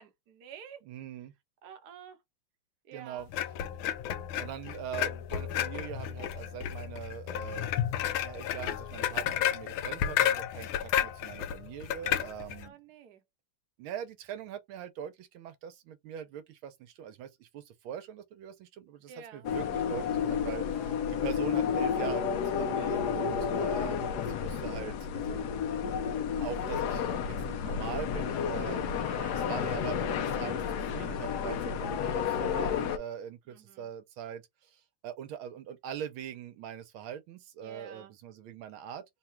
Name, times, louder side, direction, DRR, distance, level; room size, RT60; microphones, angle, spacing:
voice 1, 0.0-0.8 1.6-2.2 2.8-3.3 12.6-13.2 19.1-19.5 29.0-29.4 33.5-33.9 37.6-38.1, right 7 dB, 60° right, 1.2 m, -49 dB
voice 2, 0.9-1.3 2.9-3.3 4.4-12.8 13.8-25.7 26.4-29.1 29.3-39.0, right 9 dB, 80° right, 1.5 m, -42 dB
sound 1, 3.3-12.7, left 10 dB, 85° left, 1.4 m, -32 dB
sound 2, 19.4-33.0, left 7 dB, 65° left, 1.0 m, -31 dB
3.7 x 2.3 x 4.3 m
omnidirectional pair, 2.2 m